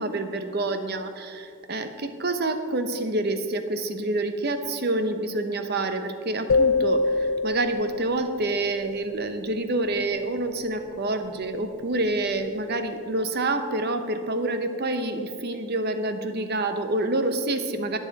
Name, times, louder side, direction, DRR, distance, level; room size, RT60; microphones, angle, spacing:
voice 1, 0.0-18.0, right 2 dB, 45° right, 8 dB, 0.8 m, -27 dB
sound 1, 6.5-8.8, left 3 dB, 60° left, 0.4 m, -24 dB
20.5 x 7.3 x 4.1 m, 2.5 s
head